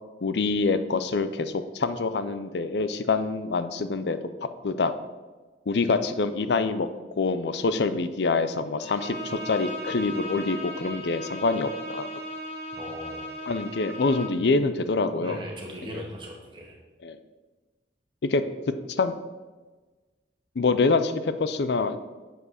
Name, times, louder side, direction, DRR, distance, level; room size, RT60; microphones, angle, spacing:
voice 1, 0.2-4.9 5.7-6.9 7.2-12.1 13.5-15.4 15.8-16.0 17.0-17.2 18.2-18.4 18.9-19.1 20.6-22.0, left 3 dB, 75° left, 11 dB, 0.5 m, -26 dB
Bowed string instrument, 8.8-14.5, equal, 35° left, 2.0 m, -37 dB
voice 2, 12.7-13.2 15.2-16.7, equal, 30° right, -1 dB, 1.8 m, -39 dB
7.7 x 4.9 x 6.4 m, 1.3 s
head